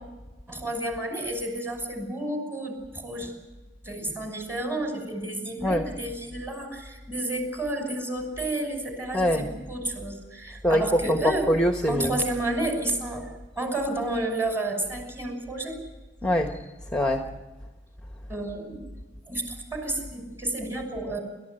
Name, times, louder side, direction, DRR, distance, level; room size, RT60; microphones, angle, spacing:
voice 1, 0.5-3.3 3.8-11.5 11.9-13.3 13.6-15.8 18.3-18.9 19.3-21.2, right 1 dB, 15° right, 4 dB, 6.0 m, -31 dB
voice 2, 9.1-9.5 10.6-12.2 16.2-16.5 16.9-17.2, equal, 5° left, 4 dB, 1.3 m, -23 dB
28.5 x 14.0 x 9.1 m, 1.2 s
head